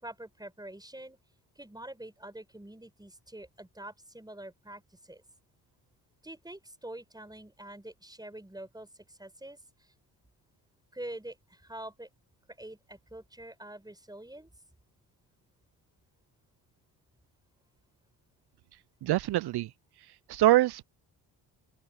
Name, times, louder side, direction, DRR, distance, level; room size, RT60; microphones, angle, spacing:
voice 1, 0.0-1.2 1.6-5.2 6.2-9.9 10.9-12.1 12.5-14.5, right 1 dB, 10° right, 5.7 m, -45 dB
voice 2, 19.0-19.7 20.3-20.8, right 15 dB, 55° right, 0.7 m, -24 dB
open air
hypercardioid pair, 50°, 46 cm